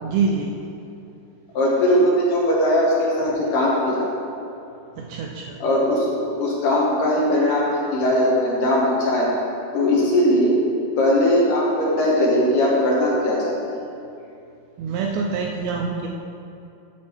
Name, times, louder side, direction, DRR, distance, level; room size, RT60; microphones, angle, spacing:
voice 1, 0.0-0.6 5.0-5.6 14.8-16.1, right 5 dB, 80° right, 0 dB, 2.2 m, -25 dB
voice 2, 1.5-4.1 5.6-9.3 9.7-10.5 11.0-13.7, left 1 dB, 65° left, -4 dB, 2.4 m, -19 dB
9.5 x 6.7 x 4.4 m, 2.7 s
omnidirectional pair, 4.7 m